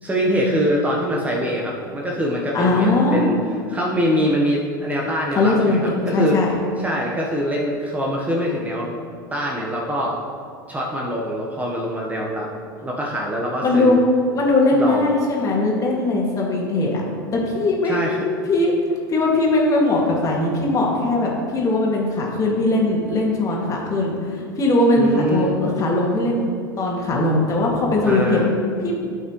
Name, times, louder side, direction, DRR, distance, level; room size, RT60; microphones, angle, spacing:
voice 1, 0.0-3.3 3.7-6.4 6.8-8.9 9.3-10.2 10.7-12.5 12.8-14.0 14.7-15.1 17.8-18.3 25.0-25.6 27.6-27.7 28.0-28.5, equal, 15° right, -2 dB, 1.1 m, -24 dB
voice 2, 2.5-3.3 5.4-6.5 13.6-14.0 14.3-17.0 17.3-18.0 18.5-18.7 19.1-26.5 26.8-28.4 28.8-28.9, left 2 dB, 30° left, -2 dB, 2.1 m, -20 dB
12.5 x 5.7 x 3.1 m, 2.2 s
figure-of-eight pair, 85°, 11 cm